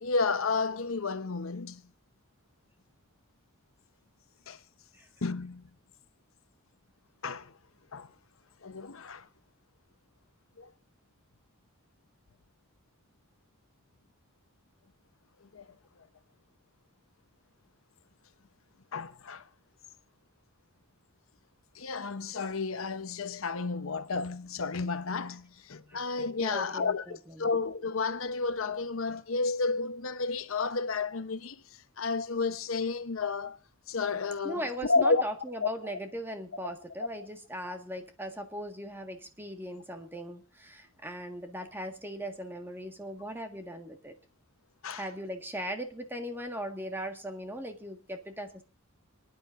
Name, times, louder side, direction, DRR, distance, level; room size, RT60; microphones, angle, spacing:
voice 1, 0.0-1.8 4.5-4.6 5.2-5.6 7.2-7.5 7.9-8.1 8.6-9.3 10.6-10.7 15.4-15.7 18.9-19.4 21.7-33.6 33.9-35.2 35.6-35.9 44.8-45.0, left 4 dB, 80° left, 0.9 m, -31 dB
voice 2, 26.4-27.1 34.4-44.1 44.9-48.6, equal, 10° right, 1.7 m, -39 dB
29.0 x 9.7 x 2.6 m
head